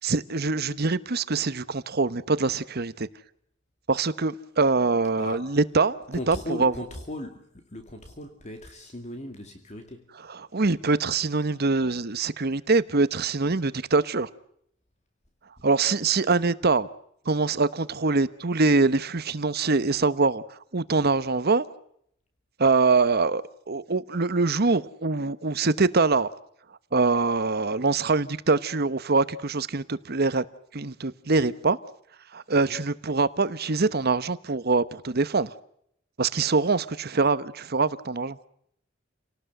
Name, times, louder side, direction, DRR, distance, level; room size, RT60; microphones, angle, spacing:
voice 1, 0.0-3.1 3.9-6.7 10.5-14.3 15.6-16.9 17.3-20.4 20.7-21.6 22.6-26.3 26.9-30.4 30.7-31.8 32.3-35.5 36.2-38.4, right 3 dB, 50° right, 1.0 m, -24 dB
voice 2, 5.2-5.6 6.1-10.1 15.6-15.7 32.5-32.8, left 1 dB, 35° left, 2.3 m, -38 dB
29.0 x 18.5 x 8.0 m
head